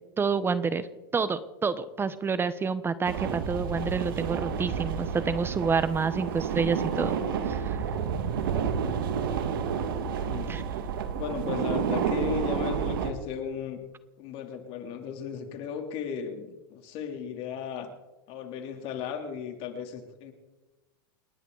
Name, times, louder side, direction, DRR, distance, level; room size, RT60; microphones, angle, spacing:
voice 1, 0.2-0.9 1.1-7.2 7.4-8.0 10.5-10.6, right 5 dB, 20° right, 14 dB, 1.0 m, -28 dB
sound 1, 3.0-13.1, right 7 dB, 75° right, 2.0 m, -30 dB
voice 2, 10.2-10.5 11.1-13.8 14.2-17.9 18.3-20.3, left 7 dB, 50° left, 5 dB, 3.2 m, -35 dB
29.0 x 11.0 x 4.0 m, 1.1 s
hypercardioid pair, 105°, 12 cm